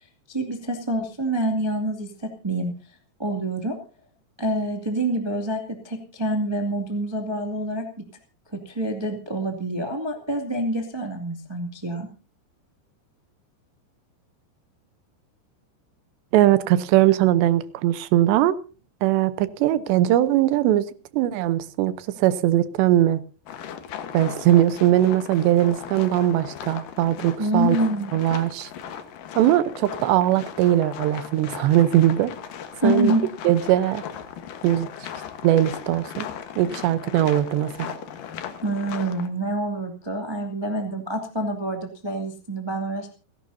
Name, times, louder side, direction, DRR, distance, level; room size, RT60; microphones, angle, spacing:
voice 1, 0.3-2.7 3.2-3.8 4.4-8.0 8.6-12.1 27.4-28.1 32.8-33.2 38.6-43.1, right 1 dB, 15° right, 1.0 m, -26 dB
voice 2, 16.3-18.5 19.0-21.9 22.2-23.2 24.1-27.8 28.1-28.7 29.4-32.3 32.8-33.1 33.4-34.0 34.6-34.9 35.4-36.3 36.6-37.9, right 13 dB, 85° right, 3.1 m, -20 dB
sound 1, 23.5-39.3, left 9 dB, 65° left, 2.5 m, -37 dB
29.5 x 11.5 x 2.7 m
omnidirectional pair, 5.0 m